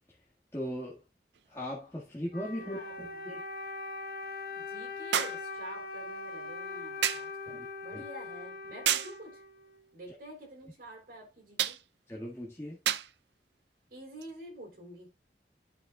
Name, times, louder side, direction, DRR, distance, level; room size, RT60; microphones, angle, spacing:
voice 1, 0.5-1.0 1.5-3.4 7.5-7.6 7.9-8.0 12.1-12.8, equal, 15° left, 1.7 m, -38 dB
sound 1, 1.3-1.4 5.1-5.5 7.0-7.3 8.9-9.2 11.6-11.8 12.9-13.1 14.2-14.3, right 10 dB, 80° right, 0.6 m, -30 dB
Wind instrument woodwind instrument, 2.3-9.9, left 3 dB, 55° left, 1.3 m, -41 dB
voice 2, 2.6-3.2 4.5-9.4 9.9-11.8 13.9-15.1, right 1 dB, 50° right, 3.6 m, -48 dB
13.0 x 5.5 x 2.3 m
head